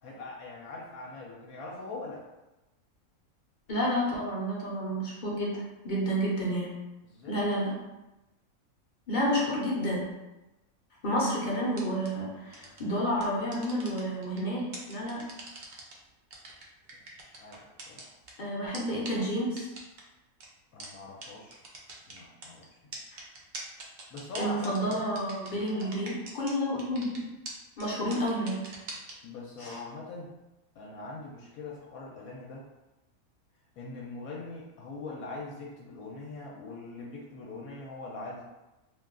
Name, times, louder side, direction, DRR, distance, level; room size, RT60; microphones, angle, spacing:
voice 1, 0.0-2.3 7.1-7.5 16.9-17.0 17.4-18.1 20.7-21.7 22.1-22.9 24.1-25.0 25.6-25.9 29.2-30.3 30.7-32.6 33.8-38.4, left 2 dB, 80° left, -3 dB, 1.0 m, -42 dB
voice 2, 3.7-5.5 5.8-6.7 7.3-7.7 9.1-10.0 11.0-15.2 18.4-19.7 23.1-23.2 24.4-27.2 27.8-28.6 29.6-29.8, equal, 45° left, -4 dB, 0.6 m, -30 dB
sound 1, 11.7-12.1 12.5-12.8 13.2-14.4 14.7-15.9 16.3-18.3 18.7-18.8 19.0-19.1 19.6-20.0 20.4-20.5 20.8-20.9 21.2-21.3 21.5-22.5 22.9-26.5 26.8-27.2 27.4-27.5 27.8-27.9 28.1-29.1, right 3 dB, 65° right, 0.4 m, -42 dB
2.5 x 2.3 x 3.6 m, 1.0 s
omnidirectional pair, 1.5 m